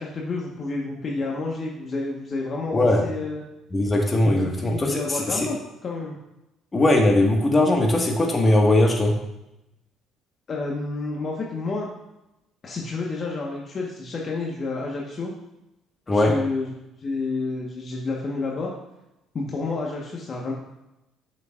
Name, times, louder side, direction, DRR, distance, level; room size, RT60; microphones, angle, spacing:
voice 1, 0.0-3.4 4.3-6.2 10.5-11.9 12.6-15.3 16.1-16.7 17.0-18.7 19.3-20.5, left 3 dB, 45° left, -2 dB, 1.4 m, -30 dB
voice 2, 3.7-5.5 6.7-9.1 16.1-16.3, left 1 dB, 30° left, 1 dB, 1.8 m, -20 dB
8.1 x 6.9 x 2.6 m, 0.91 s
hypercardioid pair, 65°, 0 cm